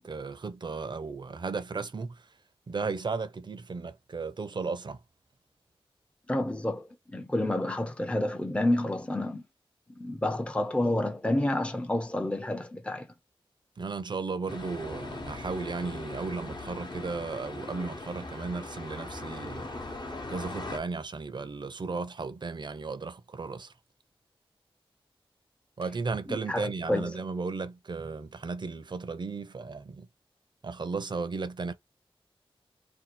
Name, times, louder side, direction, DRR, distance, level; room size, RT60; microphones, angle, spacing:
voice 1, 0.0-2.2 2.7-5.0 13.8-19.7 20.3-23.7 25.8-30.1 30.6-31.7, right 4 dB, 50° right, 0.5 m, -35 dB
voice 2, 6.3-9.4 10.0-13.1 26.3-27.1, left 1 dB, 10° left, 0.5 m, -29 dB
sound 1, 14.5-20.8, left 2 dB, 50° left, 0.9 m, -40 dB
2.7 x 2.3 x 4.1 m
wide cardioid pair, 95°, 10 cm